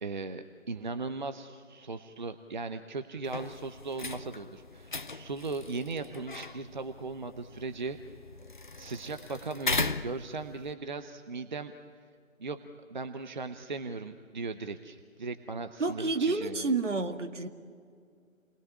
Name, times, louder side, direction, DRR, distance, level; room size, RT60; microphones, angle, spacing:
voice 1, 0.0-8.0 8.8-11.7 12.4-12.6 12.9-16.7, right 3 dB, 35° right, 0.8 m, -38 dB
sound 1, 3.2-10.7, left 3 dB, 35° left, 0.6 m, -38 dB
voice 2, 15.8-17.5, right 3 dB, 60° right, 2.0 m, -29 dB
29.0 x 20.5 x 9.9 m
figure-of-eight pair, 155°, 41 cm